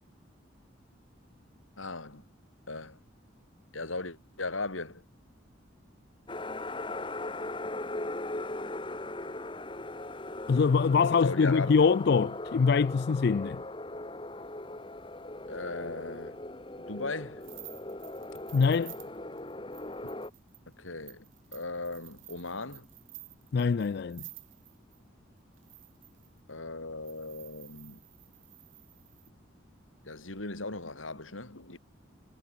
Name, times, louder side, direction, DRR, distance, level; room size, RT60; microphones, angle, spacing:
voice 1, 1.8-2.2 2.7-3.0 3.7-5.0 11.2-11.7 15.5-16.4 16.8-17.5 20.8-21.3 21.5-22.9 26.5-28.0 30.0-31.8, left 3 dB, 90° left, 4.3 m, -37 dB
sound 1, 6.3-20.3, left 2 dB, 25° left, 1.8 m, -39 dB
voice 2, 10.5-13.6 18.5-18.9 23.5-24.2, left 5 dB, 55° left, 0.4 m, -24 dB
sound 2, 17.4-25.0 25.5-26.4 27.0-29.3, right 19 dB, 80° right, 4.5 m, -51 dB
head